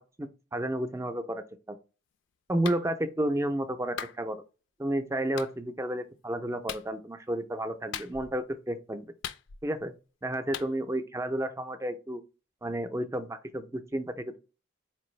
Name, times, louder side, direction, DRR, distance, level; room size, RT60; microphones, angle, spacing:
voice 1, 0.2-1.8 2.5-4.4 4.8-9.1 9.6-9.9 10.2-12.2 12.6-14.4, right 1 dB, 15° right, 0.4 m, -31 dB
Clapping, 2.6-2.8 4.0-4.2 5.4-5.5 6.7-6.9 7.9-8.4 9.2-9.8 10.5-10.7, left 8 dB, 80° left, 0.4 m, -38 dB
4.6 x 2.6 x 3.1 m
head